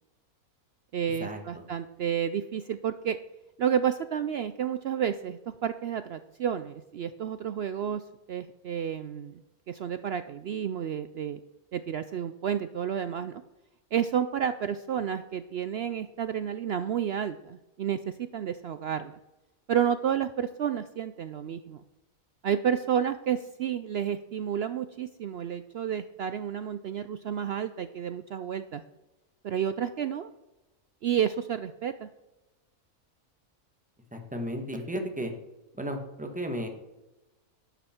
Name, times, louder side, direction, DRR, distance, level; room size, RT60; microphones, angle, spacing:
voice 1, 0.9-3.2 3.6-8.0 8.3-9.4 9.7-11.4 11.7-13.4 13.9-19.1 19.7-21.8 22.4-28.8 29.4-30.3 31.0-32.1, right 9 dB, 70° right, 11 dB, 0.6 m, -30 dB
voice 2, 34.1-35.3 35.7-36.7, equal, 5° right, 4 dB, 1.3 m, -34 dB
11.5 x 8.2 x 4.4 m, 1.0 s
omnidirectional pair, 1.5 m